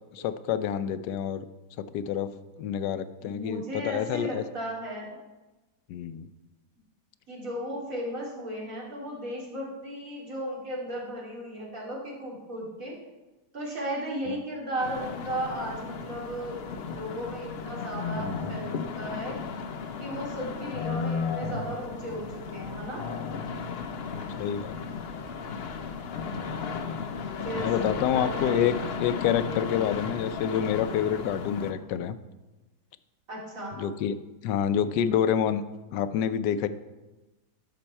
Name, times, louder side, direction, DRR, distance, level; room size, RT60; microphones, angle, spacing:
voice 1, 0.1-1.4 1.8-2.3 2.6-4.4 5.9-6.3 24.4-24.8 27.5-32.2 33.8-34.2 34.4-35.6 35.9-36.7, left 9 dB, 80° left, 12 dB, 1.2 m, -27 dB
voice 2, 3.2-5.2 7.3-13.0 13.5-16.6 16.9-19.4 20.0-23.0 27.1-28.6 33.3-33.8, right 1 dB, 55° right, -4 dB, 2.7 m, -35 dB
sound 1, 14.8-31.7, left 5 dB, 60° left, 0.6 m, -34 dB
11.5 x 6.1 x 4.4 m, 1.1 s
omnidirectional pair, 1.8 m